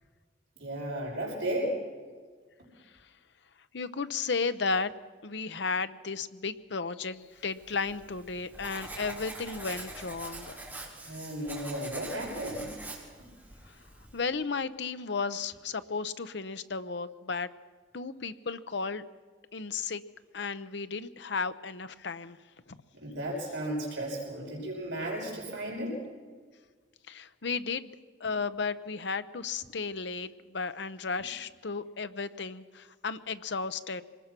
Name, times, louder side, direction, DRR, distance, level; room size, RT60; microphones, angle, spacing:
voice 1, 0.6-1.8 11.0-12.7 22.9-26.0, right 1 dB, 75° right, -3 dB, 6.0 m, -34 dB
voice 2, 3.7-4.9 5.2-10.6 14.1-17.5 17.9-19.0 19.5-20.0 20.3-22.4 22.7-22.8 27.1-27.9 28.2-34.0, left 4 dB, 65° left, 12 dB, 0.8 m, -34 dB
Writing, 7.5-14.2, right 2 dB, 10° right, 3.9 m, -44 dB
25.0 x 20.0 x 6.0 m, 1.5 s
head